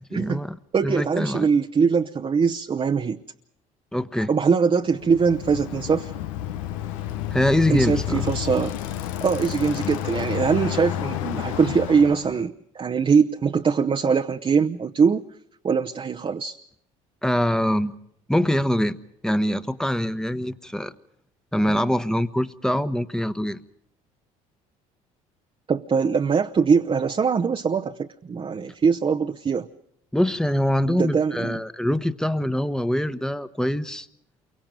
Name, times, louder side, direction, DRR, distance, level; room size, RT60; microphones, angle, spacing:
voice 1, 0.1-0.6 0.8-1.5 3.9-4.3 7.3-8.3 17.2-18.0 18.3-19.0 19.2-20.9 21.5-23.6 30.1-34.1, left 1 dB, 5° left, 1.2 m, -24 dB
voice 2, 0.7-3.2 4.3-6.1 7.7-8.8 9.2-15.2 15.6-16.6 25.7-29.7 30.9-31.6, right 5 dB, 30° right, 0.9 m, -22 dB
Bicycle, 4.9-12.4, left 12 dB, 85° left, 0.9 m, -30 dB
28.5 x 23.5 x 5.2 m
supercardioid pair, 70°, 17 cm